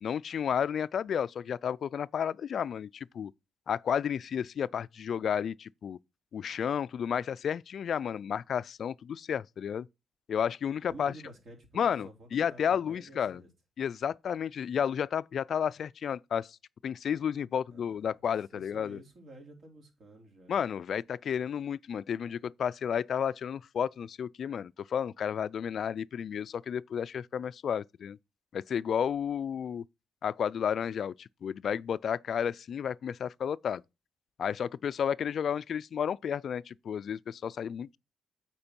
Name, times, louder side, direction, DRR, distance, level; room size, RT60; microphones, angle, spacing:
voice 1, 0.0-3.3 3.7-6.0 6.3-9.9 10.3-11.1 11.8-13.4 13.8-16.6 16.8-19.0 20.5-28.2 28.5-29.8 30.2-33.8 34.4-38.0, left 8 dB, 55° left, 0.3 m, -32 dB
voice 2, 10.7-13.5 17.7-18.0 18.5-20.6, right 1 dB, 55° right, 3.3 m, -51 dB
8.6 x 4.5 x 4.5 m
cardioid pair, 90°, 0 cm